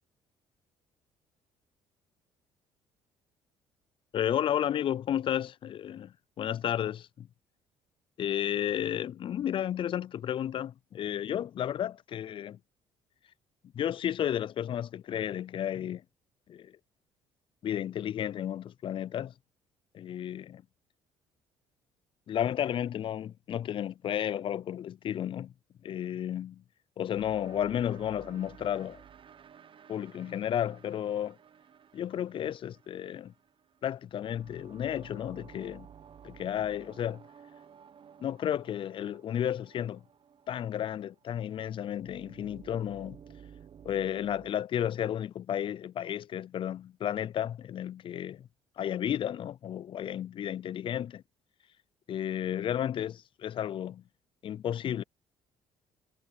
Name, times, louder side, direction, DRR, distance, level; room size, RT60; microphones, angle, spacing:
voice 1, 4.1-7.3 8.2-12.6 13.7-16.0 16.5-16.8 17.6-19.3 19.9-20.6 22.3-25.5 25.8-26.6 27.0-29.0 29.9-31.4 31.9-33.3 33.8-35.9 36.2-37.2 38.2-40.0 40.5-43.2 43.8-48.5 48.8-51.2 52.1-54.0 54.4-55.0, left 10 dB, 45° left, 0.4 m, -32 dB
sound 1, 27.1-44.5, right 8 dB, 50° right, 1.2 m, -54 dB
supercardioid pair, 70°, 12 cm